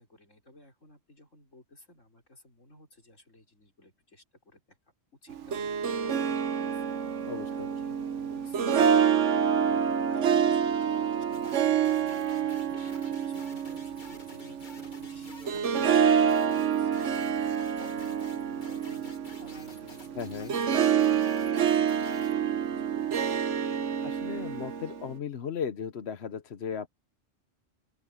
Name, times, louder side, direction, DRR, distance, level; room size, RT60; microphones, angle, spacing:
voice 1, 0.0-4.8 5.2-6.8 7.5-20.2 20.8-23.2, left 2 dB, 75° left, 5.9 m, -55 dB
Harp, 5.3-25.1, right 8 dB, 70° right, 1.3 m, -27 dB
voice 2, 7.3-7.7 20.1-20.5 24.0-26.9, left 7 dB, 60° left, 1.2 m, -36 dB
sound 1, 11.3-22.4, left 3 dB, 40° left, 2.0 m, -52 dB
open air
omnidirectional pair, 1.3 m